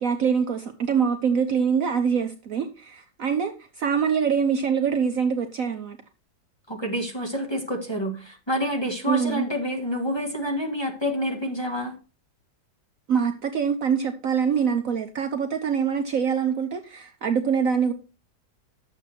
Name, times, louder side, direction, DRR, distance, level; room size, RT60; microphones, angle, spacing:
voice 1, 0.0-6.0 9.1-9.5 13.1-17.9, right 7 dB, 60° right, 1.1 m, -24 dB
voice 2, 6.7-12.0, equal, 15° left, 1.7 m, -28 dB
10.5 x 7.2 x 4.4 m
omnidirectional pair, 1.9 m